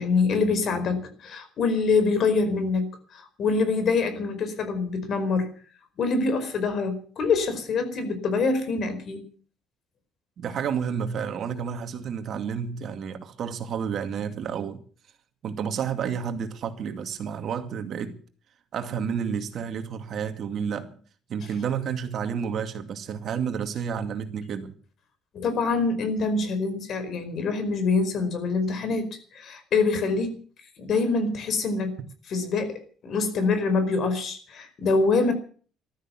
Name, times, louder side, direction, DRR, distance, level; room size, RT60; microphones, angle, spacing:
voice 1, 0.0-5.5 6.0-9.2 25.3-30.4 30.8-31.9 32.3-35.3, left 4 dB, 55° left, 4.8 m, -25 dB
voice 2, 10.4-14.8 15.4-18.2 18.7-21.0 21.3-24.7, right 7 dB, 55° right, 2.4 m, -30 dB
14.5 x 13.0 x 7.5 m
cardioid pair, 105°, 0 cm